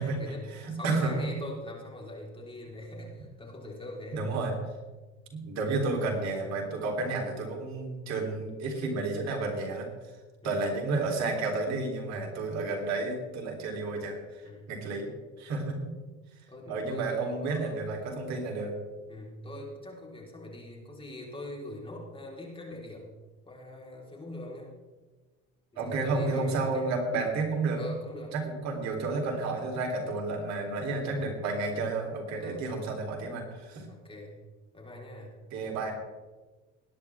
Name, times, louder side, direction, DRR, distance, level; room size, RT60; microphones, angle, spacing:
voice 1, 0.0-4.2 8.2-8.5 10.4-10.5 14.4-14.7 16.5-17.8 19.1-23.1 23.5-24.7 25.7-26.9 27.8-28.3 30.3-30.4 31.1-31.3 32.4-32.6 33.9-34.4 34.7-35.4, left 1 dB, 15° left, -2 dB, 4.2 m, -42 dB
voice 2, 0.5-1.3 4.1-4.5 5.3-9.9 10.4-15.1 15.4-15.9 16.7-18.7 25.8-27.8 28.3-33.9 35.5-35.9, right 3 dB, 60° right, 1 dB, 3.7 m, -31 dB
20.5 x 10.0 x 3.6 m, 1.2 s
supercardioid pair, 95°, 31 cm